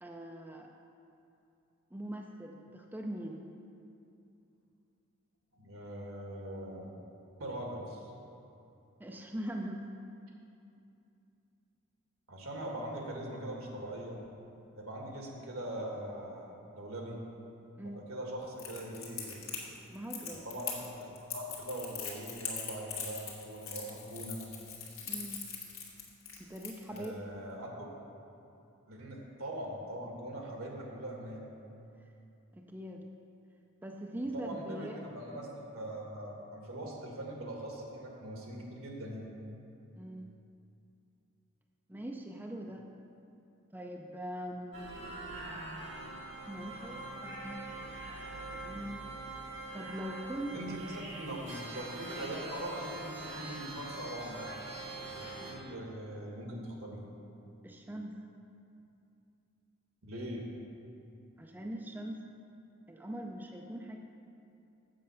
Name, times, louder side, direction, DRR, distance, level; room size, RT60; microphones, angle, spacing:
voice 1, 0.0-0.7 1.9-3.5 9.0-10.0 17.8-18.0 19.9-20.4 25.1-25.5 26.4-27.1 32.5-33.0 33.8-35.0 40.0-40.3 41.9-42.9 43.7-44.9 46.5-48.2 48.5-49.1 49.7-50.6 51.0-51.1 57.6-58.2 61.4-62.2 62.9-64.0, right 1 dB, 10° right, 1 dB, 0.4 m, -42 dB
voice 2, 5.5-6.9 7.4-8.1 12.3-14.2 14.7-17.2 17.8-19.7 20.3-24.4 26.9-27.7 28.9-31.4 34.3-39.3 50.5-54.4 55.4-57.0 60.0-60.4, right 1 dB, 80° right, -1 dB, 1.8 m, -41 dB
Crackle, 18.6-27.0, left 6 dB, 70° left, 1.7 m, -41 dB
sound 1, 44.7-55.5, right 2 dB, 60° right, 2.1 m, -43 dB
7.5 x 7.5 x 5.6 m, 2.7 s
head